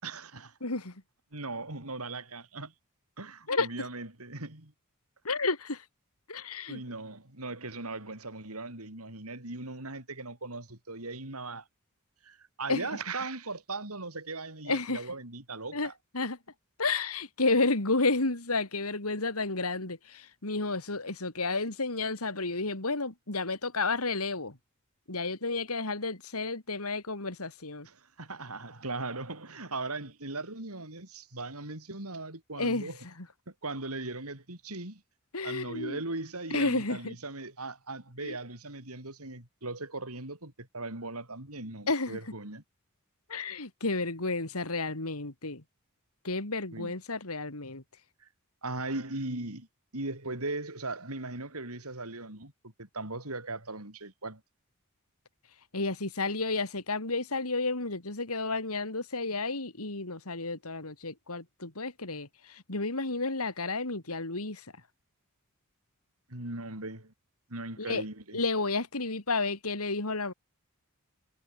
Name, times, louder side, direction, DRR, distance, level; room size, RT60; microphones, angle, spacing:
voice 1, 0.0-0.6 1.3-2.7 3.2-4.7 6.7-11.7 12.2-15.9 27.8-33.0 33.6-35.0 35.4-42.6 46.7-46.9 48.6-49.7 49.9-54.4 66.3-67.1 67.5-68.4, right 2 dB, 85° right, 5.6 m, -38 dB
voice 2, 0.6-0.9 3.5-3.7 5.2-5.8 6.3-6.8 12.7-12.9 14.7-15.0 15.7-16.4 16.8-24.6 25.1-27.9 32.6-32.9 35.3-36.0 36.5-37.2 38.2-38.4 41.9-42.2 43.3-45.6 46.2-47.8 55.7-64.6 67.8-68.0 68.3-70.3, left 3 dB, 80° left, 3.4 m, -31 dB
head